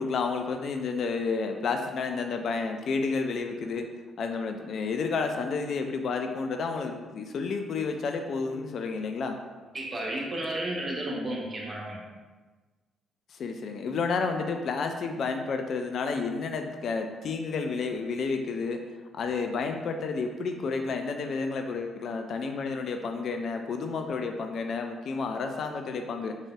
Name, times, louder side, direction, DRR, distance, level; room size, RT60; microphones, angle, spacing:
voice 1, 0.0-3.9 4.2-9.4 13.3-18.8 19.1-26.4, left 4 dB, 50° left, 5 dB, 0.3 m, -31 dB
voice 2, 9.7-12.0, right 1 dB, 35° right, -2 dB, 1.0 m, -32 dB
4.8 x 3.8 x 2.3 m, 1.3 s
figure-of-eight pair, 40°, 0 cm